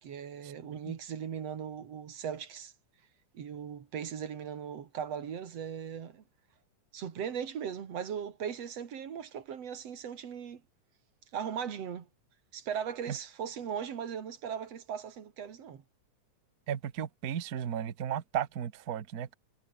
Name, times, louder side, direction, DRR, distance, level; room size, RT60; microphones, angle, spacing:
voice 1, 0.0-2.7 3.3-6.2 6.9-10.6 11.3-12.1 12.5-15.8, right 8 dB, 55° right, 3.0 m, -38 dB
voice 2, 16.7-19.3, right 9 dB, 75° right, 0.8 m, -34 dB
omnidirectional pair, 3.7 m